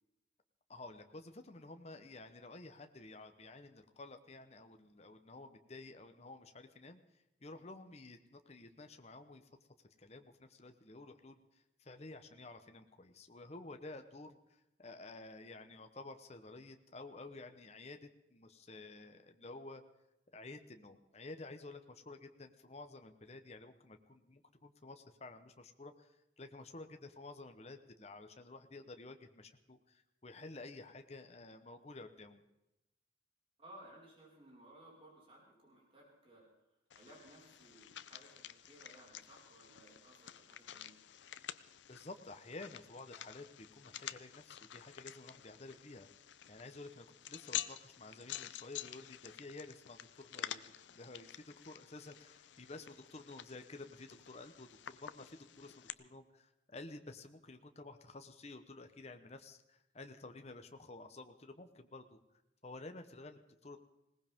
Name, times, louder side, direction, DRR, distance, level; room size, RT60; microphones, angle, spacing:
voice 1, 0.7-7.0 7.4-9.5 10.0-14.4 14.8-19.8 20.3-32.4 41.9-46.1 46.5-50.6 50.9-62.2 62.6-63.8, left 2 dB, 35° left, 7 dB, 0.9 m, -52 dB
voice 2, 33.6-36.5 36.9-40.9, right 1 dB, 30° right, -4 dB, 5.0 m, -59 dB
sound 1, 36.9-55.9, left 11 dB, 80° left, 0.6 m, -49 dB
20.5 x 18.5 x 3.6 m, 0.92 s
head